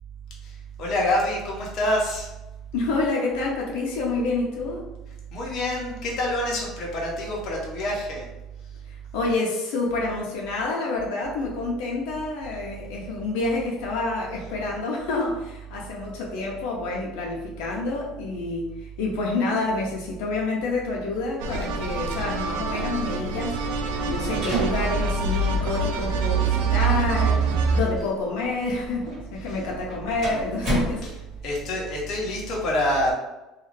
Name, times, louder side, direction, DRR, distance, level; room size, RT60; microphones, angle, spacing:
voice 1, 0.4-2.3 5.3-8.3 29.5-29.6 31.4-33.1, left 1 dB, 40° left, -3 dB, 0.7 m, -26 dB
voice 2, 2.7-4.8 8.9-23.6 24.1-27.4 27.7-31.0, left 3 dB, 80° left, -2 dB, 0.5 m, -28 dB
sound 1, 21.4-27.8, right 4 dB, 85° right, 0.3 m, -25 dB
sound 2, 23.8-31.6, right 1 dB, 35° right, 1.2 m, -35 dB
2.4 x 2.3 x 3.1 m, 1.0 s
cardioid pair, 175°, 0 cm